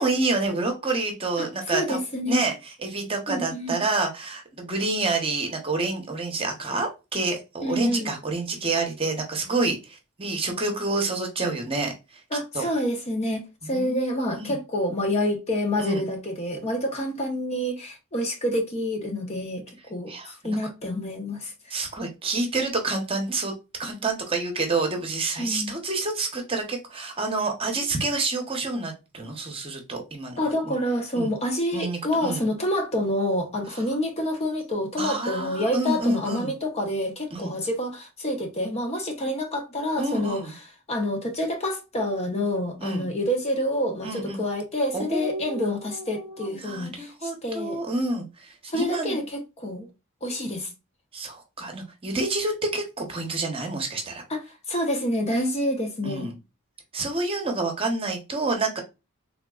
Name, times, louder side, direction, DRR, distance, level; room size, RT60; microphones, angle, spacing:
voice 1, 0.0-2.0 2.3-2.5 2.8-11.9 12.5-12.6 13.6-14.0 14.3-14.6 15.8-16.0 20.1-20.3 21.7-23.5 23.8-30.4 30.6-30.7 31.1-31.3 31.7-32.4 33.7-33.8 35.0-36.5 37.3-37.5 40.0-40.5 42.8-43.1 44.0-44.4 44.9-49.2 51.1-54.2 56.0-56.4 56.9-58.8, right 3 dB, 25° right, 0.9 m, -28 dB
voice 2, 1.4-2.5 3.3-3.8 7.6-8.1 12.3-21.8 25.4-25.7 30.4-40.4 40.9-47.8 48.7-49.9 50.2-50.7 54.3-56.3, left 1 dB, 30° left, 0.7 m, -28 dB
3.6 x 2.9 x 2.3 m
head